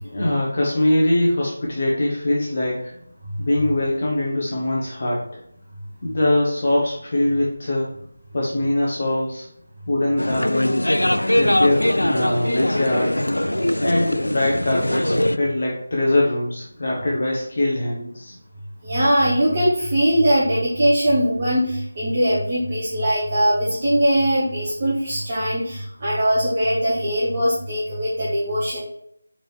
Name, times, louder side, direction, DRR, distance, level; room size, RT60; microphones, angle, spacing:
voice 1, 0.0-2.9 3.4-5.4 6.0-7.9 8.3-9.5 9.9-10.9 11.4-13.2 13.8-18.3, left 1 dB, 40° left, -4 dB, 1.3 m, -22 dB
sound 1, 10.2-15.4, left 1 dB, 75° left, 0.3 m, -21 dB
voice 2, 18.8-28.8, equal, 30° right, -8 dB, 1.7 m, -21 dB
5.0 x 4.6 x 4.5 m, 0.72 s
figure-of-eight pair, 160°, 0 cm